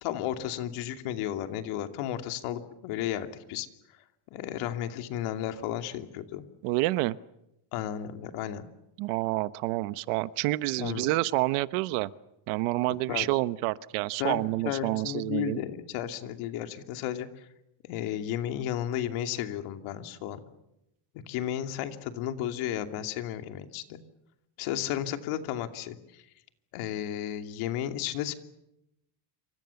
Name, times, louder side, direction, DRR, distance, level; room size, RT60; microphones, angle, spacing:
voice 1, 0.0-3.7 4.3-6.4 7.7-8.6 10.8-11.1 13.1-13.3 14.2-17.4 17.8-20.4 21.3-24.0 24.6-26.2 26.7-28.3, left 11 dB, 80° left, 7 dB, 2.8 m, -33 dB
voice 2, 6.6-7.2 9.0-12.1 12.5-15.6, right 19 dB, 90° right, 15 dB, 1.2 m, -28 dB
28.0 x 25.5 x 7.1 m, 0.85 s
cardioid pair, 180°, 49 cm